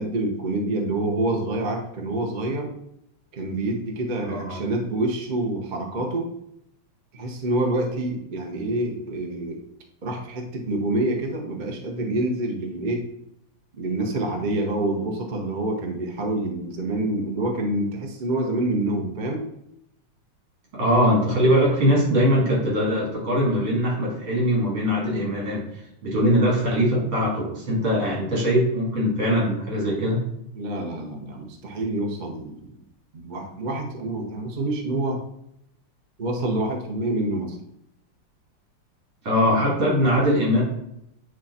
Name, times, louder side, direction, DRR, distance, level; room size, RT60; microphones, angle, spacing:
voice 1, 0.0-2.7 3.3-6.3 7.1-9.6 10.0-13.1 13.7-19.5 30.5-32.8 33.1-35.2 36.2-37.6, right 1 dB, 40° right, 1 dB, 0.7 m, -27 dB
voice 2, 4.2-4.6 20.7-25.6 26.0-30.2 39.2-40.6, equal, 65° right, -5 dB, 3.7 m, -21 dB
8.9 x 3.1 x 4.2 m, 0.79 s
omnidirectional pair, 2.4 m